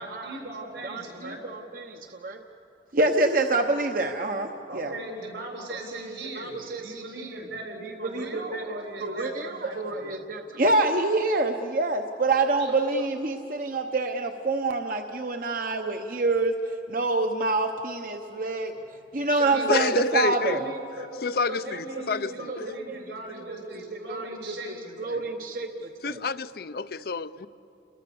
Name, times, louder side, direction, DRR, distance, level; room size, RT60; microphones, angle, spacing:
voice 1, 0.0-1.4 4.7-10.1 12.6-12.8 19.3-19.8 20.1-21.1 21.5-25.3, right 1 dB, 90° right, 7.8 m, -38 dB
voice 2, 0.8-2.4 2.9-4.9 5.9-7.4 7.8-18.7 19.1-20.7 22.0-22.6 22.9-23.0 23.5-23.6 23.9-26.2, right 2 dB, 50° right, 0.9 m, -27 dB
voice 3, 19.7-20.6 21.2-22.6 26.0-27.5, left 4 dB, 55° left, 0.6 m, -28 dB
29.5 x 21.5 x 7.0 m
head